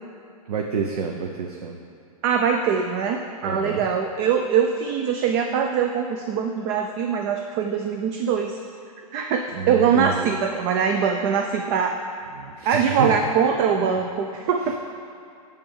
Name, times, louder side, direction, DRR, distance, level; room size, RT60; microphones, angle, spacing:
voice 1, 0.5-1.8 3.4-3.8 9.5-10.4 12.4-13.2, right 6 dB, 85° right, 2 dB, 0.8 m, -28 dB
voice 2, 2.2-8.6 9.1-11.9 12.7-14.8, right 7 dB, 40° right, 4 dB, 0.6 m, -22 dB
10.0 x 3.6 x 7.2 m, 2.6 s
hypercardioid pair, 140°, 19 cm